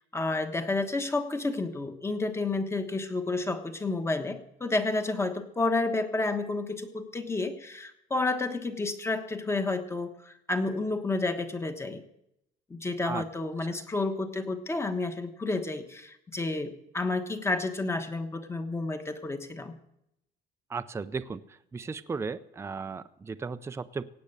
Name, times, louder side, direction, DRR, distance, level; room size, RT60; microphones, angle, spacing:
voice 1, 0.0-12.0 12.7-19.7, left 2 dB, 15° left, 8 dB, 1.2 m, -30 dB
voice 2, 20.7-21.4 21.7-24.0, right 4 dB, 15° right, 11 dB, 0.5 m, -35 dB
17.0 x 8.5 x 6.7 m, 0.81 s
cardioid pair, 145°, 18 cm